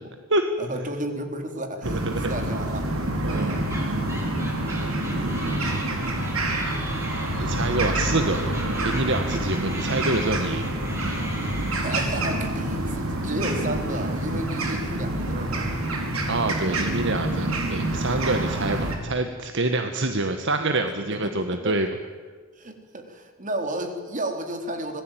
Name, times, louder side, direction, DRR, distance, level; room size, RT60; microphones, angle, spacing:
voice 1, 0.6-2.8 3.3-3.8 11.8-15.8 18.7-19.0 21.1-21.9 22.6-25.0, right 1 dB, 35° right, 5 dB, 3.7 m, -33 dB
voice 2, 1.8-2.3 3.2-3.6 7.4-8.4 8.8-10.6 16.3-21.9, right 2 dB, 60° right, 7 dB, 1.5 m, -26 dB
sound 1, 1.8-19.0, right 1 dB, 85° right, 5.0 m, -27 dB
sound 2, 3.3-12.4, right 1 dB, 15° right, 6.1 m, -40 dB
26.0 x 19.5 x 9.2 m, 1.5 s
head